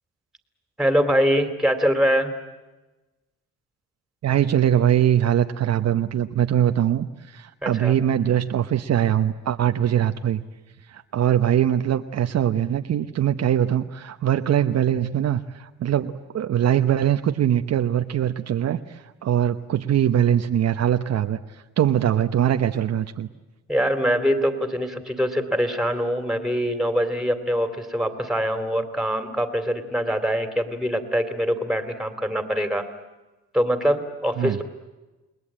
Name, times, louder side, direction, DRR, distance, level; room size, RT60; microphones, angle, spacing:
voice 1, 0.8-2.3 7.6-7.9 23.7-32.8 33.5-34.6, equal, ahead, 8 dB, 3.1 m, -23 dB
voice 2, 4.2-10.4 10.9-21.4 21.8-23.3 34.4-34.6, right 10 dB, 60° right, 7 dB, 1.0 m, -22 dB
29.0 x 20.0 x 8.8 m, 1.1 s
cardioid pair, 90°, 30 cm